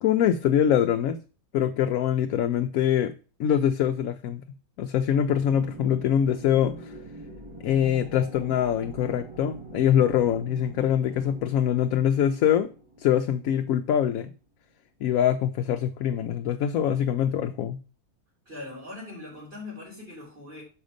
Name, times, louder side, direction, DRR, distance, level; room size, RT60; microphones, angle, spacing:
voice 1, 0.0-1.2 1.5-3.1 3.4-4.4 4.8-6.9 7.6-12.7 13.0-14.3 15.0-17.8, left 9 dB, 70° left, 0.9 m, -24 dB
sound 1, 5.5-14.0, right 2 dB, 20° right, 1.3 m, -43 dB
voice 2, 18.5-20.6, left 2 dB, 40° right, 3.6 m, -41 dB
6.5 x 5.2 x 5.0 m
omnidirectional pair, 1.6 m